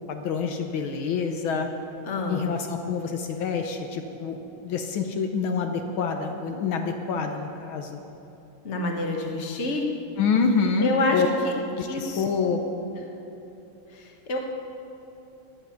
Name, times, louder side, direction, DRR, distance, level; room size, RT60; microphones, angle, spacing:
voice 1, 0.1-1.7 2.3-4.4 4.6-8.0 10.2-11.3 11.8-12.6, left 5 dB, 75° left, 4 dB, 1.6 m, -27 dB
voice 2, 2.0-2.5 8.6-9.9 10.8-12.2 13.9-14.4, left 2 dB, 35° left, 1 dB, 1.5 m, -28 dB
17.0 x 10.5 x 5.8 m, 3.0 s
omnidirectional pair, 2.3 m